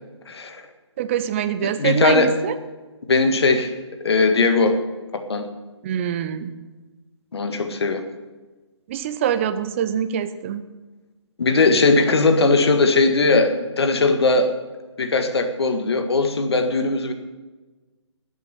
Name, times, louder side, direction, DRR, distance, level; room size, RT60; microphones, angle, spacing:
voice 1, 0.3-0.6 1.6-2.3 3.1-3.7 4.0-4.8 5.1-5.5 7.3-8.0 11.4-14.5 15.0-17.1, left 3 dB, 60° left, 7 dB, 1.8 m, -19 dB
voice 2, 1.0-2.5 5.8-6.5 8.9-10.6, right 9 dB, 25° right, 12 dB, 0.7 m, -24 dB
12.5 x 8.4 x 9.2 m, 1.2 s
figure-of-eight pair, 145°, 15 cm